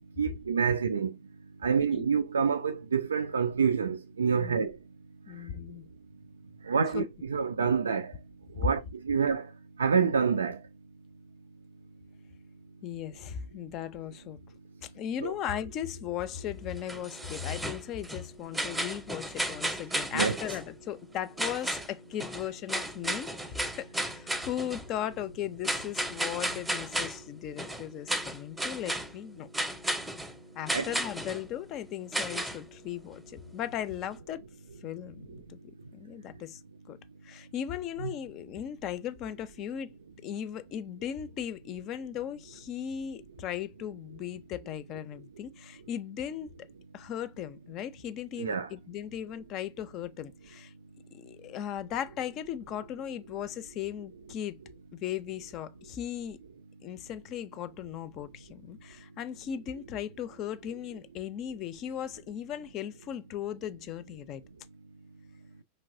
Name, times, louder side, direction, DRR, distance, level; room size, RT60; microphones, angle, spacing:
voice 1, 0.2-1.1 1.6-4.7 6.6-8.1 8.6-9.5 9.8-10.6 15.2-15.3 20.1-20.4 30.7-31.0 38.0-38.1 48.4-48.7, right 6 dB, 75° right, 0.4 m, -27 dB
voice 2, 5.3-5.8 6.9-7.1 8.6-8.7 12.8-14.4 14.8-29.5 30.5-34.4 34.8-35.6 35.9-36.6 36.9-37.0 37.2-39.9 40.2-46.5 46.9-50.7 51.1-54.6 55.0-56.4 56.8-64.4, left 10 dB, 40° left, 0.5 m, -37 dB
sound 1, 16.8-18.2 18.5-20.7 21.4-21.9 22.2-24.9 25.6-27.2 27.6-29.1 29.5-30.3 30.7-31.4 32.1-32.6, right 1 dB, 5° right, 0.7 m, -33 dB
4.5 x 3.2 x 2.5 m
figure-of-eight pair, 90°, 0 cm